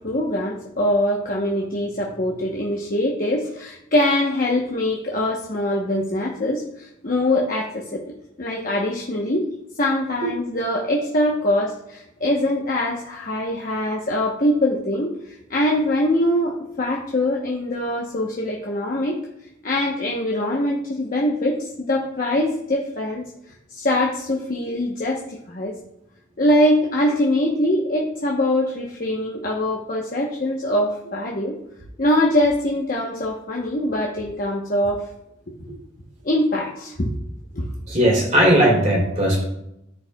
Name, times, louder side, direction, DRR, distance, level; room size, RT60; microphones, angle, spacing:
voice 1, 0.0-9.5 9.8-15.1 15.5-19.2 19.6-23.2 23.7-25.8 26.4-31.6 32.0-35.1 35.5-35.6 36.2-37.1 37.5-37.7, left 1 dB, 45° left, -1 dB, 0.9 m, -23 dB
voice 2, 37.9-39.4, equal, 40° right, -3 dB, 3.0 m, -17 dB
14.5 x 4.8 x 2.3 m, 0.84 s
head